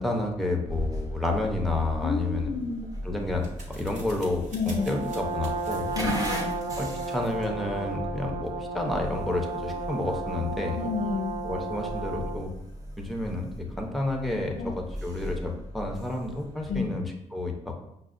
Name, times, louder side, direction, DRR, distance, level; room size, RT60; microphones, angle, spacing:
voice 1, 0.0-2.5 3.0-5.9 6.8-10.8 11.4-12.5 13.0-17.7, left 2 dB, ahead, 2 dB, 0.6 m, -30 dB
sound 1, 0.7-16.9, equal, 30° right, 0.8 m, -38 dB
voice 2, 2.0-2.8 4.5-5.0 5.9-6.6 10.8-11.4 14.6-14.7 16.7-17.0, left 4 dB, 70° left, 6 dB, 0.4 m, -30 dB
sound 2, 2.6-8.0, right 1 dB, 70° right, 0.9 m, -49 dB
Brass instrument, 4.7-12.5, right 3 dB, 50° right, 0.5 m, -34 dB
5.5 x 2.1 x 2.4 m, 0.80 s
cardioid pair, 105°, 13 cm